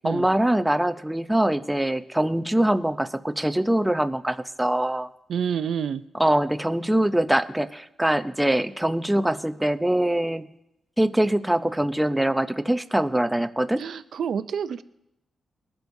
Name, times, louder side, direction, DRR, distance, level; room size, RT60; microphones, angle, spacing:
voice 1, 0.0-5.1 6.2-10.5 11.0-13.8, right 1 dB, 5° right, 10 dB, 0.5 m, -23 dB
voice 2, 5.3-6.0 13.8-14.8, right 7 dB, 75° right, 13 dB, 0.5 m, -28 dB
22.0 x 11.5 x 2.7 m, 0.85 s
cardioid pair, 110°, 0 cm